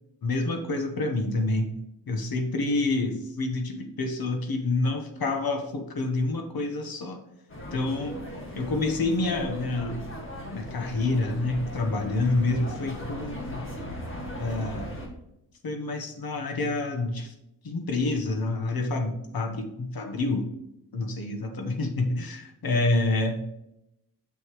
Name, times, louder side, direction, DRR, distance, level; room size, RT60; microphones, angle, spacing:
voice 1, 0.2-1.7 2.1-7.2 7.7-8.2 8.5-10.1 10.5-13.7 14.4-14.9 15.6-17.3 17.6-20.5 20.9-23.4, left 2 dB, 60° left, 5 dB, 1.1 m, -28 dB
sound 1, 7.5-15.1, equal, 30° left, 1.8 m, -38 dB
6.9 x 6.5 x 3.1 m, 0.85 s
wide cardioid pair, 145°, 41 cm